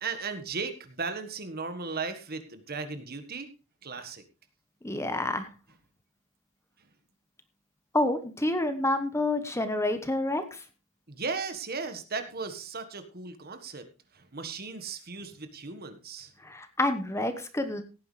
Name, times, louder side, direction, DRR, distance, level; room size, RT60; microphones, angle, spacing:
voice 1, 0.0-3.5 3.8-4.2 11.1-13.8 14.1-16.3, right 4 dB, 45° right, 9 dB, 1.5 m, -36 dB
voice 2, 4.8-5.5 7.9-10.6 16.4-17.8, left 1 dB, 15° left, 9 dB, 1.1 m, -28 dB
17.0 x 9.5 x 3.3 m, 0.30 s
head